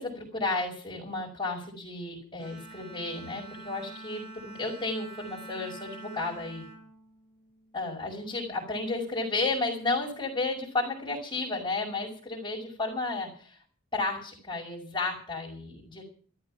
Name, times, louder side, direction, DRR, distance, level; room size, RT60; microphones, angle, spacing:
voice 1, 0.0-6.7 7.7-13.6 13.9-16.0, left 3 dB, 20° left, -6 dB, 5.4 m, -32 dB
Bowed string instrument, 2.4-7.9, right 2 dB, 50° right, 4.3 m, -46 dB
14.0 x 14.0 x 6.0 m, 0.43 s
head